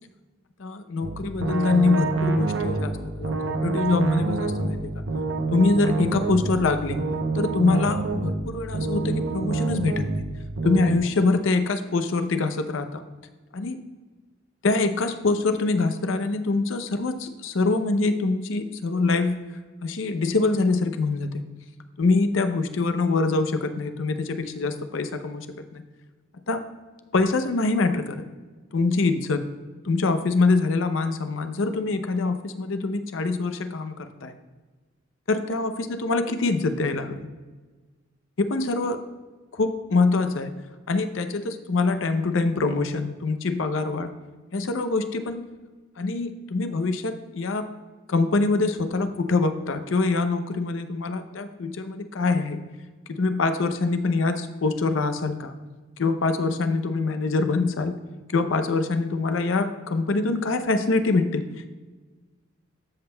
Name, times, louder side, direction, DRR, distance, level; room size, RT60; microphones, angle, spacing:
voice 1, 0.6-5.0 5.5-7.0 7.3-10.2 10.6-13.0 13.5-13.8 14.6-19.4 19.8-21.4 22.0-25.5 25.7-25.8 26.5-26.6 27.1-28.2 28.7-29.4 29.8-34.3 35.3-37.3 38.4-39.0 39.5-40.5 40.9-44.1 44.5-45.4 46.0-47.7 48.1-52.6 53.2-55.6 56.0-58.0 58.3-61.4, left 3 dB, 75° left, 9 dB, 0.6 m, -24 dB
sound 1, 1.0-11.0, right 3 dB, 70° right, 0.7 m, -27 dB
13.5 x 5.4 x 2.2 m, 1.3 s
head